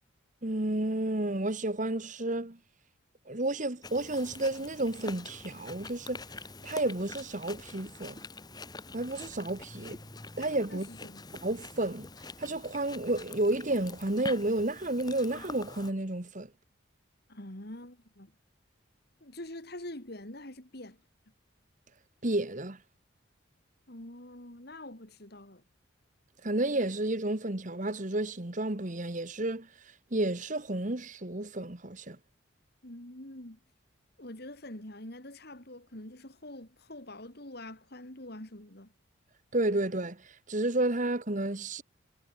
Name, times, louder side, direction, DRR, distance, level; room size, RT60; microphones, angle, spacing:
voice 1, 0.4-2.6 3.3-6.2 6.6-8.2 8.9-10.0 10.4-10.9 11.4-12.1 12.4-16.5 22.2-22.8 26.4-29.7 30.1-32.2 39.5-41.8, right 2 dB, 40° right, 1.5 m, -31 dB
Chewing mastication, 3.8-15.9, left 3 dB, 20° left, 1.7 m, -45 dB
voice 2, 10.7-11.3 17.3-18.3 19.2-21.0 23.9-25.6 32.8-33.6 34.2-38.9, left 1 dB, 50° left, 3.2 m, -45 dB
head